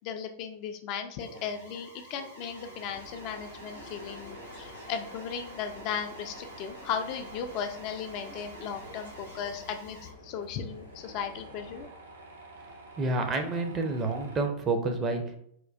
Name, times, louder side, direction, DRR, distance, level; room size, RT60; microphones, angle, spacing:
voice 1, 0.0-10.0 10.2-11.9, left 7 dB, 45° left, 6 dB, 0.3 m, -36 dB
Alarm, 1.2-10.1, equal, 90° right, 0.9 m, -50 dB
Tools, 2.5-14.5, right 2 dB, 65° right, 0.6 m, -50 dB
sound 1, 2.9-11.9, left 2 dB, 85° left, 0.6 m, -50 dB
voice 2, 13.0-15.4, right 3 dB, 25° right, 4 dB, 0.5 m, -29 dB
4.3 x 2.2 x 2.4 m, 0.68 s
figure-of-eight pair, 90°, 0 cm